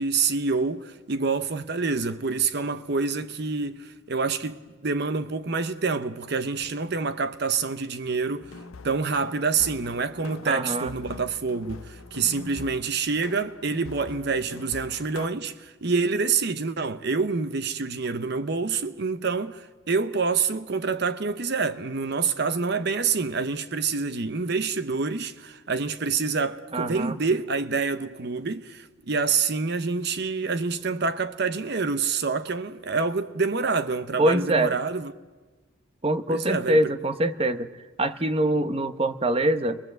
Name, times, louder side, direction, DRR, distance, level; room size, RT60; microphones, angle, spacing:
voice 1, 0.0-8.6 8.8-35.1 36.3-36.8, right 4 dB, 50° right, 0.8 m, -27 dB
sound 1, 8.4-15.3, left 4 dB, 85° left, 0.8 m, -43 dB
voice 2, 10.5-10.9 26.7-27.2 34.2-34.7 36.0-37.7 38.0-39.8, right 1 dB, 30° right, 1.0 m, -24 dB
29.5 x 23.0 x 7.9 m
head